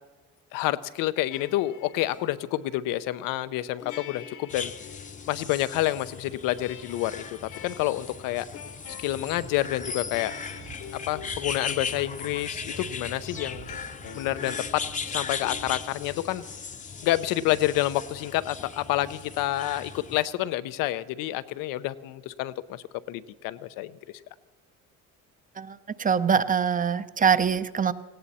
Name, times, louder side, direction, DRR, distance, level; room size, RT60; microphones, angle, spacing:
voice 1, 0.5-4.7 5.3-8.5 9.0-10.3 10.9-13.7 14.1-16.4 17.0-23.9, left 15 dB, 85° left, 14 dB, 0.7 m, -28 dB
sound 1, 1.3-3.3 3.8-6.0 6.5-16.6, left 9 dB, 70° left, 1.3 m, -47 dB
sound 2, 4.5-20.2, left 5 dB, 25° left, 0.7 m, -38 dB
sound 3, 9.1-15.7, right 6 dB, 65° right, 5.0 m, -47 dB
voice 2, 25.6-27.9, right 7 dB, 25° right, 14 dB, 0.6 m, -24 dB
18.0 x 16.5 x 4.2 m, 1.3 s
cardioid pair, 100°, 33 cm